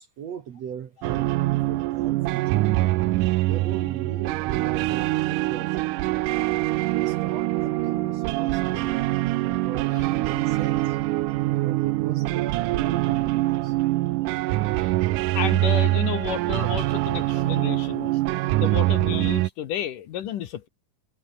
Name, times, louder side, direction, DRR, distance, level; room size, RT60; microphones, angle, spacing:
voice 1, 0.0-2.7 3.4-5.9 6.9-11.0 11.6-13.8, right 8 dB, 55° right, 2.2 m, -38 dB
sound 1, 1.0-19.5, right 18 dB, 90° right, 1.8 m, -24 dB
voice 2, 15.3-18.1 18.6-20.7, left 10 dB, 65° left, 2.6 m, -31 dB
omnidirectional pair, 4.5 m